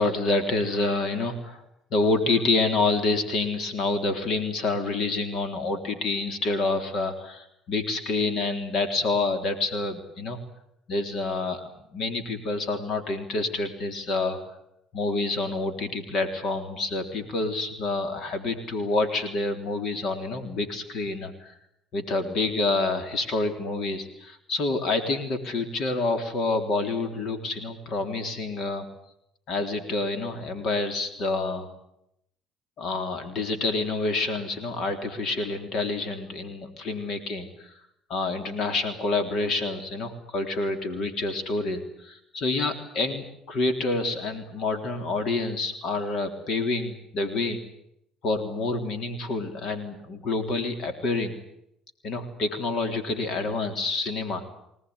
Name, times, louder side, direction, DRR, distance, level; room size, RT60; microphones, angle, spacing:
voice 1, 0.0-1.6 1.9-10.4 10.9-11.6 11.9-14.4 14.9-21.5 21.9-28.9 29.5-31.7 32.8-37.7 38.1-47.6 48.2-51.4 52.0-54.5, left 3 dB, 55° left, 8 dB, 3.6 m, -28 dB
25.0 x 18.5 x 9.6 m, 0.77 s
cardioid pair, 105°, 0 cm